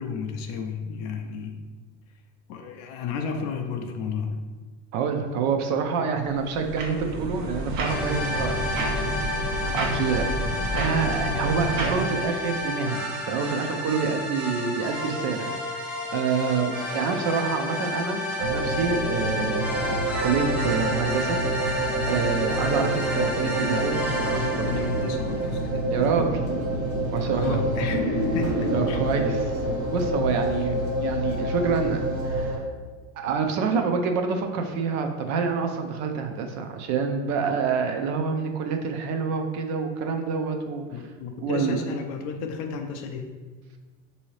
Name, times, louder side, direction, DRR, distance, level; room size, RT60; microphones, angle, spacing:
voice 1, 0.0-1.6 2.5-4.4 22.6-22.8 24.6-25.9 27.3-29.0 40.9-43.3, left 6 dB, 45° left, 5 dB, 0.4 m, -33 dB
voice 2, 4.9-9.1 9.7-10.3 10.7-15.8 16.1-21.4 22.1-24.7 25.9-26.4 27.1-27.6 28.7-29.5 29.9-32.7 33.2-41.0 41.4-41.8, right 5 dB, 45° right, 5 dB, 0.5 m, -27 dB
sound 1, 6.2-12.0, right 1 dB, 80° right, 1.0 m, -30 dB
sound 2, 7.8-25.7, left 1 dB, 5° right, 0.7 m, -31 dB
sound 3, 18.4-32.6, right 1 dB, 65° right, 1.4 m, -27 dB
4.6 x 2.7 x 3.1 m, 1.4 s
supercardioid pair, 125°, 38 cm